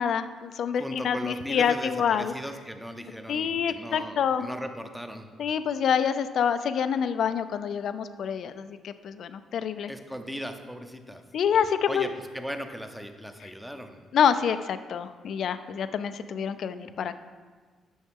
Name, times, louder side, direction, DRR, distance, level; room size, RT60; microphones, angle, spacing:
voice 1, 0.0-2.3 3.3-4.5 5.4-9.9 11.3-12.1 14.1-17.2, left 7 dB, 65° left, 11 dB, 0.4 m, -27 dB
voice 2, 0.8-5.3 9.9-11.2 11.9-14.0, equal, ahead, 6 dB, 0.7 m, -37 dB
9.3 x 6.3 x 3.7 m, 1.4 s
cardioid pair, 90°, 0 cm